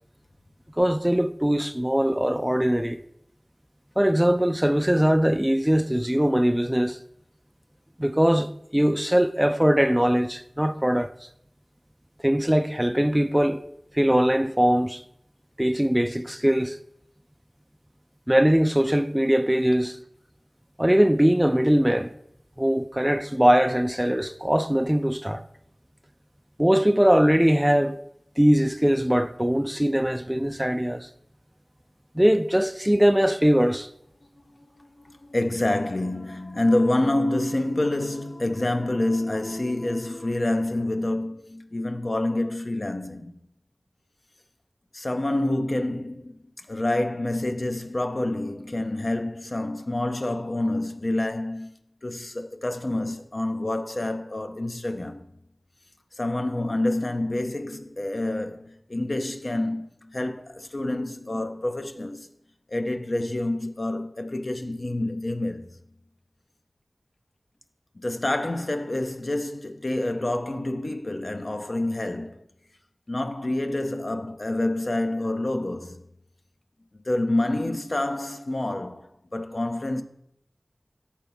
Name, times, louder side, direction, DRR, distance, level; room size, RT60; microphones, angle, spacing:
voice 1, 0.8-3.0 4.0-7.0 8.0-11.1 12.2-13.6 13.9-15.0 15.6-16.8 18.3-20.0 20.8-22.1 22.6-25.4 26.6-28.0 28.4-31.1 32.2-33.9, equal, 10° right, 0.3 m, -21 dB
voice 2, 34.6-43.3 44.9-51.7 52.0-55.3 56.2-62.3 62.7-65.7 68.0-72.4 73.1-76.0 77.0-80.0, left 1 dB, 55° left, 0.6 m, -27 dB
6.9 x 4.4 x 5.4 m
wide cardioid pair, 40°, 0 cm